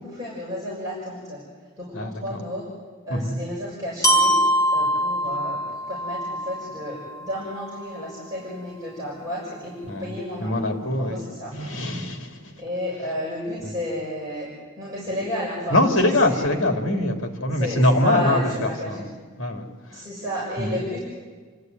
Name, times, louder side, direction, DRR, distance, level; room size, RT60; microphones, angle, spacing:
voice 1, 0.0-1.4 1.8-2.6 3.0-4.3 4.7-11.5 12.6-14.5 14.8-16.6 17.5-19.0 19.9-21.0, equal, 15° right, -8 dB, 6.8 m, -32 dB
voice 2, 1.9-2.4 3.1-3.3 9.9-10.1 10.4-11.2 11.5-12.6 13.6-13.7 15.7-19.1 19.4-20.0 20.6-20.7, left 1 dB, 65° left, 4 dB, 2.8 m, -23 dB
Glockenspiel, 4.0-8.0, equal, 15° left, 2.4 m, -24 dB
29.0 x 13.5 x 9.4 m, 1.5 s
head